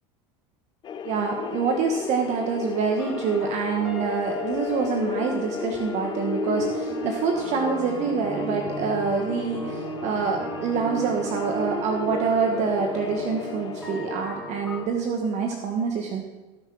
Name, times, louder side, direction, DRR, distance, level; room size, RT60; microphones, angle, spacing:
sound 1, 0.8-14.3, left 8 dB, 30° left, 0.7 m, -35 dB
voice 1, 1.0-16.2, right 5 dB, 50° right, 3 dB, 1.4 m, -26 dB
sound 2, 3.0-14.8, equal, 5° right, 3.2 m, -34 dB
18.0 x 6.1 x 6.2 m, 1.2 s
supercardioid pair, 135°, 15 cm